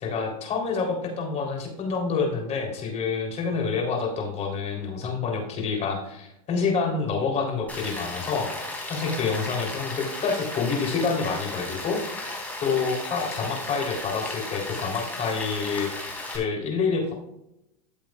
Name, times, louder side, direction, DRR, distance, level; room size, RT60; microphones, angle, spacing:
voice 1, 0.0-17.1, left 5 dB, 35° left, 1 dB, 3.6 m, -28 dB
Rain, 7.7-16.4, left 2 dB, 10° left, 3.8 m, -35 dB
14.5 x 7.4 x 2.4 m, 0.85 s
hypercardioid pair, 110°, 19 cm